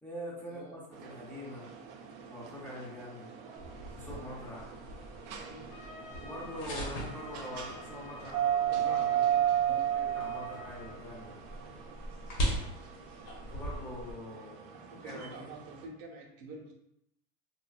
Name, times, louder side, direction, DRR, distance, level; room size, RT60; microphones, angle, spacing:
voice 1, 0.0-1.7 2.3-3.3 3.9-4.8 6.2-9.3 9.9-11.4 13.4-15.3, equal, 5° left, -8 dB, 0.7 m, -44 dB
sound 1, 0.9-15.8, right 10 dB, 40° right, 0.4 m, -36 dB
sound 2, 3.6-14.1, right 1 dB, 45° left, 1.0 m, -41 dB
Trumpet, 5.7-11.0, left 3 dB, 70° left, 0.7 m, -50 dB
voice 2, 8.7-9.8 14.4-16.7, right 3 dB, 75° right, 0 dB, 0.8 m, -48 dB
3.4 x 2.2 x 2.4 m, 0.77 s
supercardioid pair, 145°, 40 cm